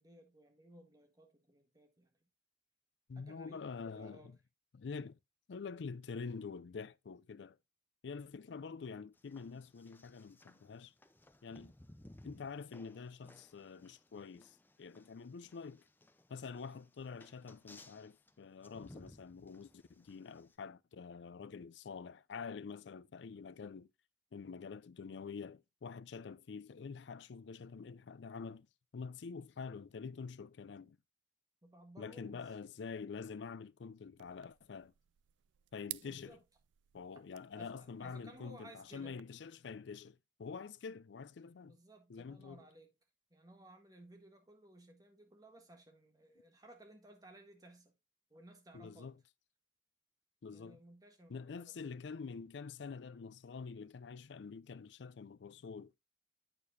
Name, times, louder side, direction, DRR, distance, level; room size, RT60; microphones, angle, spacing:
voice 1, 0.0-2.1 3.1-4.3 31.6-32.6 36.0-36.4 37.5-39.2 41.6-42.9 43.3-47.9 48.3-49.1 50.5-52.0, right 1 dB, 20° right, 1.5 m, -59 dB
voice 2, 3.1-4.4 4.7-5.2 5.5-7.6 8.0-10.9 11.4-11.7 12.2-15.8 16.3-23.9 24.3-28.7 28.9-31.0 32.0-34.9 35.7-36.4 36.9-41.8 42.1-42.6 48.7-49.2 50.4-50.8 51.3-55.9, left 5 dB, 70° left, 0.4 m, -47 dB
sound 1, 9.1-20.5, left 1 dB, 10° left, 0.6 m, -60 dB
sound 2, 34.2-39.2, right 18 dB, 75° right, 0.3 m, -54 dB
8.6 x 6.7 x 2.6 m
head